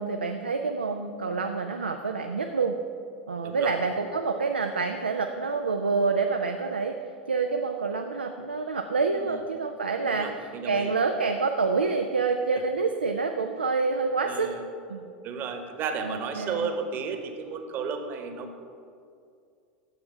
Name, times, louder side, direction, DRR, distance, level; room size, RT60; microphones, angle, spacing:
voice 1, 0.0-2.7 3.3-7.0 7.3-10.3 10.7-14.5 14.9-15.0 16.0-16.7, right 4 dB, 85° right, 4 dB, 0.5 m, -27 dB
voice 2, 10.0-10.9 14.2-14.7 15.2-18.6, right 5 dB, 40° right, 6 dB, 1.1 m, -33 dB
9.8 x 7.1 x 5.0 m, 2.4 s
figure-of-eight pair, 85°, 5 cm